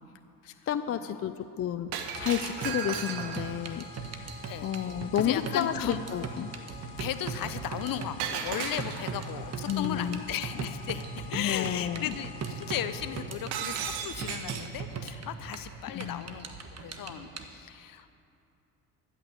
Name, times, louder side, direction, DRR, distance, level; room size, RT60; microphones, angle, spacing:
voice 1, 0.7-1.9 2.2-3.9 4.6-6.5 9.7-10.2 11.3-12.1 15.9-16.3, left 10 dB, 35° left, 11 dB, 0.5 m, -31 dB
sound 1, 1.9-17.4, right 5 dB, 40° right, 1.3 m, -40 dB
Shatter, 1.9-3.6 8.2-9.2 13.5-14.8, right 7 dB, 75° right, 1.2 m, -35 dB
sound 2, 2.1-13.6, left 8 dB, 85° left, 1.1 m, -50 dB
voice 2, 5.1-6.0 7.0-18.1, left 10 dB, 55° left, 11 dB, 0.9 m, -36 dB
13.5 x 6.6 x 8.2 m, 2.6 s
hypercardioid pair, 65°, 41 cm